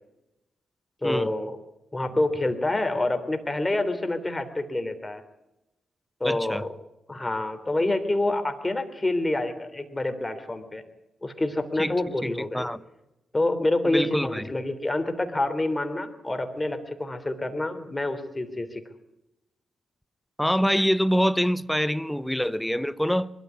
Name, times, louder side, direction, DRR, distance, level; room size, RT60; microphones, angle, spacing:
voice 1, 1.0-1.6 1.9-5.2 6.2-6.7 7.1-10.8 11.2-12.7 13.3-18.8, left 2 dB, 25° left, 3.4 m, -27 dB
voice 2, 6.2-6.6 11.8-12.0 12.2-12.8 13.9-14.5 20.4-23.3, equal, 5° left, 1.0 m, -25 dB
21.5 x 13.0 x 9.6 m
supercardioid pair, 45°, 0 cm